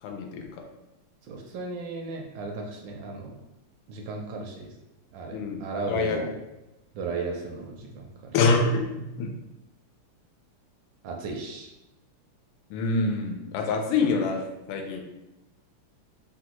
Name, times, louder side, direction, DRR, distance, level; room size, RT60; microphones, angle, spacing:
voice 1, 0.0-0.5 5.3-5.6 5.9-6.2 8.3-9.3 12.7-15.0, left 3 dB, 90° left, 3 dB, 1.5 m, -26 dB
voice 2, 1.2-3.4 3.9-4.8 5.1-6.3 6.9-8.4 11.0-11.7, right 3 dB, 75° right, 1 dB, 1.0 m, -35 dB
3.7 x 2.2 x 2.9 m, 0.97 s
omnidirectional pair, 2.4 m